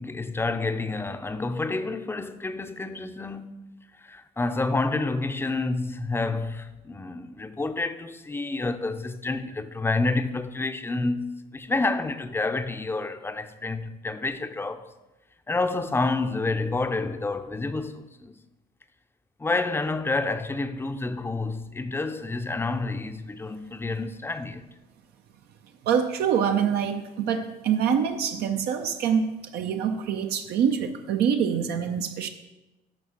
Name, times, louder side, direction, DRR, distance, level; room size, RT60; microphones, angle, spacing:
voice 1, 0.0-3.5 4.0-14.9 15.5-18.4 19.4-24.6, left 3 dB, 15° left, 0.5 m, -29 dB
voice 2, 25.8-29.3 29.5-32.3, right 7 dB, 70° right, 0.7 m, -25 dB
10.5 x 3.6 x 6.4 m
cardioid pair, 110°, 17 cm